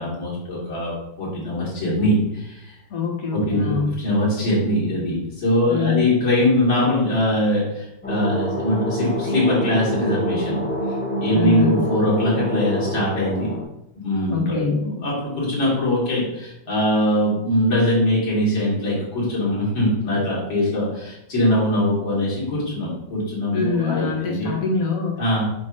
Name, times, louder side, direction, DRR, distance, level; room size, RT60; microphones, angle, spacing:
voice 1, 0.0-2.7 3.3-10.6 11.2-13.5 14.0-24.5 25.2-25.4, left 1 dB, 85° left, -7 dB, 3.5 m, -22 dB
voice 2, 2.9-4.0 5.7-6.1 11.3-11.9 14.3-14.9 23.5-25.4, left 5 dB, 50° left, 0 dB, 1.6 m, -24 dB
sound 1, 8.0-13.6, equal, 5° left, 1.9 m, -26 dB
7.6 x 3.0 x 6.2 m, 0.84 s
omnidirectional pair, 2.1 m